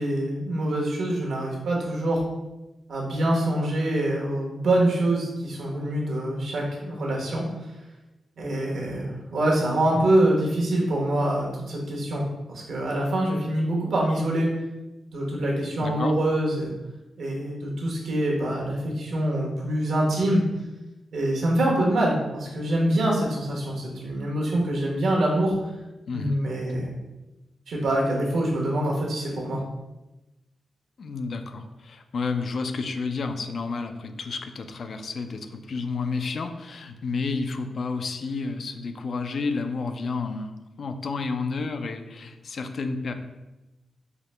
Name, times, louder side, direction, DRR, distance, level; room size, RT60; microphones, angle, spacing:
voice 1, 0.0-2.2 2.9-7.4 8.4-14.5 15.1-16.7 17.2-20.4 21.1-25.7 26.1-26.9 27.7-29.6, right 1 dB, 80° right, -2 dB, 1.0 m, -25 dB
voice 2, 15.8-16.1 26.1-26.4 31.0-43.1, left 4 dB, 60° left, 8 dB, 0.3 m, -31 dB
4.6 x 2.1 x 3.2 m, 1.0 s
cardioid pair, 90°, 0 cm